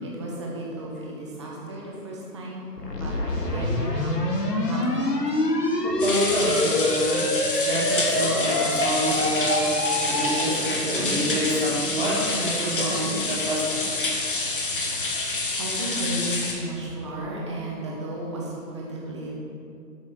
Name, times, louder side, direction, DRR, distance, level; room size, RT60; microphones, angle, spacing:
voice 1, 0.0-4.2 4.6-5.1 15.6-19.3, right 1 dB, 20° right, -4 dB, 1.0 m, -34 dB
sound 1, 2.8-10.6, left 1 dB, 75° left, 1.6 m, -26 dB
voice 2, 5.8-7.3 7.6-13.8, right 1 dB, 35° right, -4 dB, 1.7 m, -27 dB
sound 2, 6.0-16.5, left 3 dB, 35° left, 0.9 m, -28 dB
12.5 x 6.2 x 3.6 m, 2.6 s
figure-of-eight pair, 140°, 49 cm